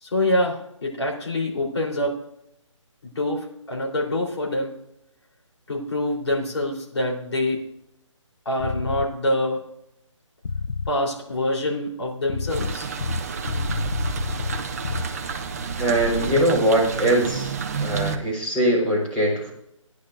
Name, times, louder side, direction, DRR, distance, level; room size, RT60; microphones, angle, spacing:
voice 1, 0.0-2.2 3.0-4.8 5.7-7.7 8.5-9.6 10.9-12.9, left 1 dB, 55° left, -1 dB, 3.7 m, -25 dB
sound 1, 8.6-9.1 10.4-11.0 12.3-15.0, left 4 dB, 90° left, 0.6 m, -28 dB
sound 2, 12.5-18.2, right 5 dB, 30° right, 0.8 m, -30 dB
voice 2, 15.8-17.5 17.8-19.5, right 1 dB, 5° left, -9 dB, 3.5 m, -21 dB
16.5 x 10.5 x 2.6 m, 0.78 s
figure-of-eight pair, 165°, 17 cm